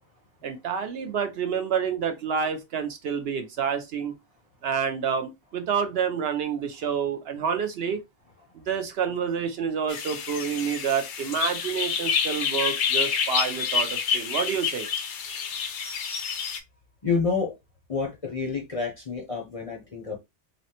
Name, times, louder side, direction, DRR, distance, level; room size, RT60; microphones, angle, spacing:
voice 1, 0.4-4.2 4.6-8.0 8.7-14.9 15.2-15.7, right 7 dB, 65° right, 0.7 m, -28 dB
sound 1, 9.9-16.6, left 7 dB, 80° left, 0.9 m, -28 dB
voice 2, 17.0-17.5 17.9-20.2, left 5 dB, 40° left, 0.6 m, -28 dB
3.4 x 2.0 x 2.8 m
omnidirectional pair, 1.2 m